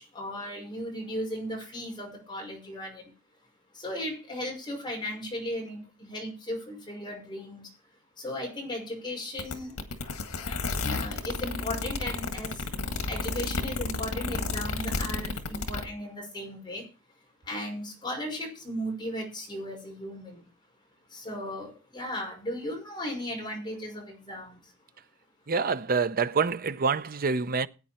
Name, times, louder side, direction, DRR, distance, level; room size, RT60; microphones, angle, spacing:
voice 1, 0.0-3.1 3.7-7.7 8.2-9.8 10.3-12.6 13.1-16.8 17.5-20.4 21.1-24.6, left 1 dB, 20° left, 5.6 m, -36 dB
sound 1, 9.4-15.8, left 3 dB, 85° left, 1.8 m, -31 dB
voice 2, 25.5-27.7, right 5 dB, 45° right, 0.7 m, -26 dB
15.5 x 9.2 x 4.3 m
head